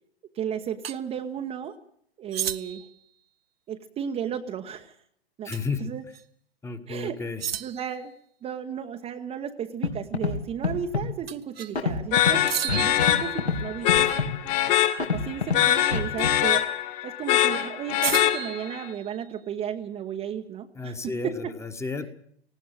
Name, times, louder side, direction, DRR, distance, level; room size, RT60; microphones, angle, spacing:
voice 1, 0.3-1.7 2.2-2.9 3.7-5.0 5.4-5.5 5.8-6.0 6.9-7.2 7.6-8.1 8.4-14.2 15.1-16.7 17.0-21.5, right 8 dB, 20° right, 3 dB, 1.0 m, -34 dB
sound 1, 0.8-1.0 2.3-3.0 5.5-5.8 6.1-6.2 7.4-8.0 11.3-11.8 12.5-13.9 16.2-16.6 18.0-19.4, right 10 dB, 65° right, 1.0 m, -33 dB
voice 2, 5.4-5.9 6.6-7.4 20.7-22.1, left 4 dB, 10° left, 8 dB, 1.4 m, -32 dB
Scratching (performance technique), 9.8-9.9 10.1-10.4 10.6-11.0 11.7-12.3 12.7-13.1 13.4-13.6 13.9-14.3 15.0-15.6 15.9-16.3, left 5 dB, 85° left, 3.0 m, -25 dB
sound 2, 12.1-18.8, left 13 dB, 40° left, 2.2 m, -24 dB
19.0 x 16.0 x 8.9 m, 0.67 s
figure-of-eight pair, 110°, 32 cm